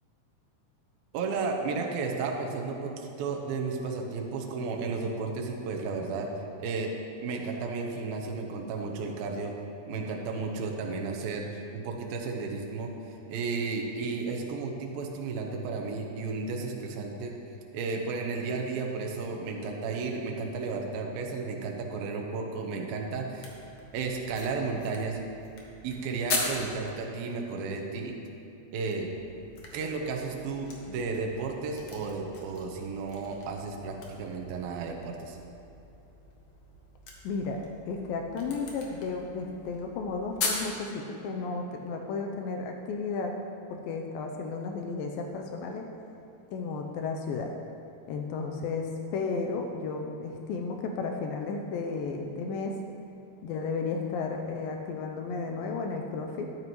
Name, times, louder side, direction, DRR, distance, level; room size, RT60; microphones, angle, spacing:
voice 1, 1.1-6.3 6.6-6.9 7.2-9.5 9.9-12.9 13.3-17.3 17.7-23.5 23.9-25.2 25.8-28.2 28.7-29.1 29.7-35.4, right 4 dB, 70° right, 1 dB, 2.5 m, -33 dB
sound 1, 23.3-26.9 29.0-40.7, left 3 dB, 65° left, 1.6 m, -40 dB
voice 2, 37.2-37.6 37.9-43.3 43.7-45.8 46.5-47.5 48.1-52.7 53.4-56.5, left 4 dB, 85° left, 3 dB, 2.0 m, -33 dB
13.0 x 10.5 x 3.1 m, 2.8 s
omnidirectional pair, 4.8 m